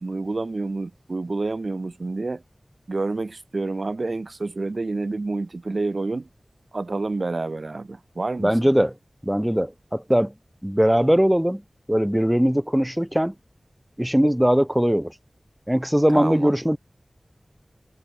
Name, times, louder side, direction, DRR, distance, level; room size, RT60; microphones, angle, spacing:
voice 1, 0.0-2.4 2.9-6.3 6.7-8.6 16.1-16.5, right 3 dB, 65° right, 2.3 m, -28 dB
voice 2, 8.4-8.9 9.2-10.3 10.6-11.6 11.9-13.3 14.0-15.1 15.7-16.8, equal, 10° right, 5.6 m, -20 dB
cardioid pair, 40°, 0 cm